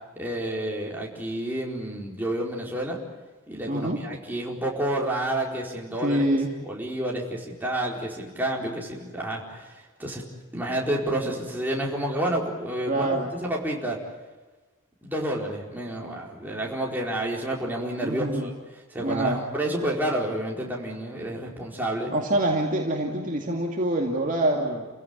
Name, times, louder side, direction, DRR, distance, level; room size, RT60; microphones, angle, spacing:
voice 1, 0.2-3.0 3.5-6.2 6.7-10.2 10.5-13.1 13.4-14.0 15.0-18.5 18.9-22.1, right 1 dB, 10° right, -3 dB, 4.6 m, -29 dB
voice 2, 3.7-4.0 6.0-6.5 12.9-13.3 18.0-18.5 19.0-19.4 22.1-24.9, right 1 dB, 40° right, 0 dB, 2.5 m, -25 dB
30.0 x 16.5 x 9.5 m, 1.3 s
head